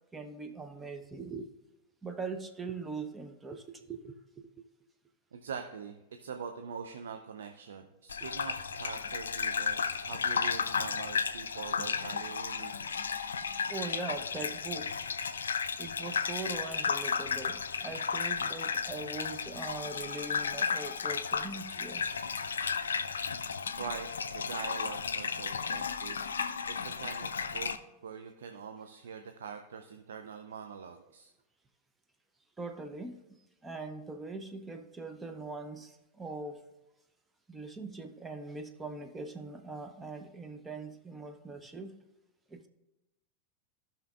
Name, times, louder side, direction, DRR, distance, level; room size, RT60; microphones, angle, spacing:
voice 1, 0.1-1.5 2.0-4.5 13.7-14.9 15.8-22.0 32.6-36.6 37.5-42.0 42.5-42.7, right 3 dB, 15° right, 6 dB, 0.7 m, -41 dB
voice 2, 5.3-12.7 23.8-27.7 28.0-31.3, right 6 dB, 65° right, 6 dB, 0.5 m, -43 dB
Gurgling / Bathtub (filling or washing), 8.1-27.8, left 6 dB, 70° left, 0.4 m, -34 dB
16.0 x 5.8 x 2.4 m, 0.98 s
figure-of-eight pair, 90°, 0 cm